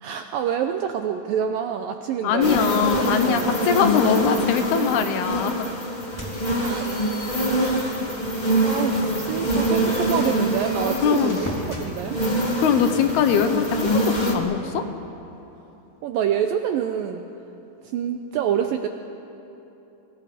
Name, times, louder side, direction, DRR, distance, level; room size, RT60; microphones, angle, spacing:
voice 1, 0.0-3.7 4.8-4.9 6.6-7.0 7.6-8.1 8.6-11.5 11.8-12.4 16.0-17.2 17.9-18.9, right 8 dB, 80° right, 6 dB, 2.1 m, -27 dB
voice 2, 2.2-5.7 11.0-11.4 12.6-14.8, left 8 dB, 75° left, 8 dB, 2.9 m, -22 dB
sound 1, 2.4-14.3, right 1 dB, 55° left, 0.4 m, -25 dB
sound 2, 6.0-8.1 8.5-8.6 9.1-11.9, equal, 5° left, 2.6 m, -39 dB
sound 3, 7.7-15.0, right 4 dB, 60° right, 1.8 m, -42 dB
28.5 x 24.5 x 5.1 m, 3.0 s
omnidirectional pair, 4.8 m